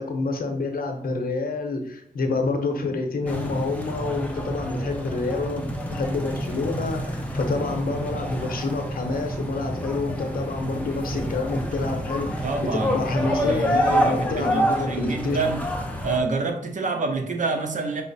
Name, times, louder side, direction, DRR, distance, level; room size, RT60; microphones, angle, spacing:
voice 1, 0.0-12.5 12.9-15.4, left 3 dB, 70° left, 4 dB, 0.7 m, -28 dB
sound 1, 3.3-16.2, equal, 10° left, 0.5 m, -28 dB
voice 2, 12.4-15.6 16.0-18.0, right 3 dB, 55° right, 4 dB, 0.6 m, -28 dB
5.1 x 2.0 x 4.0 m, 0.68 s
wide cardioid pair, 135°, 15 cm